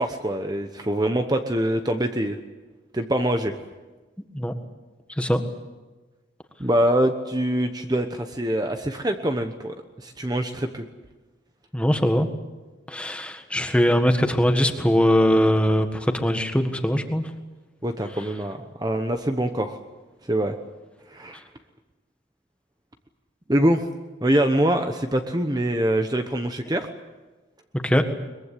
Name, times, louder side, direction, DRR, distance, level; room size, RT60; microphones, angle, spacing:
voice 1, 0.0-2.4 2.9-3.6 6.6-10.8 17.8-19.8 20.3-20.6 21.1-21.4 23.5-23.8 24.2-26.9, right 1 dB, 20° right, 6 dB, 1.0 m, -24 dB
voice 2, 11.7-12.3 12.9-17.3 27.8-28.0, equal, 5° left, 6 dB, 1.6 m, -21 dB
22.5 x 22.0 x 8.4 m, 1.2 s
head